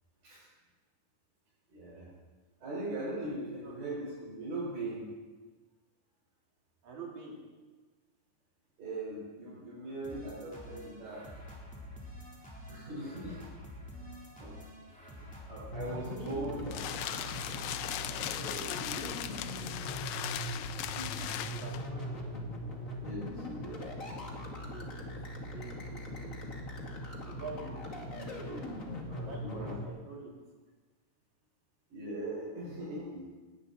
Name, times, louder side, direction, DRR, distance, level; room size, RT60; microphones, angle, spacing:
voice 1, 1.7-2.1 2.6-5.1 8.8-11.2 12.7-13.4 13.9-14.1 14.4-14.5 15.2-16.8 20.9-21.3 23.0-23.7 29.4-29.7 31.9-33.3, right 1 dB, 80° right, -8 dB, 6.6 m, -40 dB
voice 2, 6.8-7.3 16.1-16.8 18.3-20.2 21.2-22.3 24.7-26.5 27.2-30.3, right 3 dB, 60° right, -3 dB, 4.9 m, -48 dB
sound 1, 10.0-18.3, equal, ahead, 3.3 m, -48 dB
sound 2, 15.7-29.9, left 1 dB, 30° left, 2.1 m, -40 dB
sound 3, 16.2-21.9, left 11 dB, 75° left, 2.0 m, -38 dB
19.5 x 17.5 x 4.1 m, 1.3 s
omnidirectional pair, 3.8 m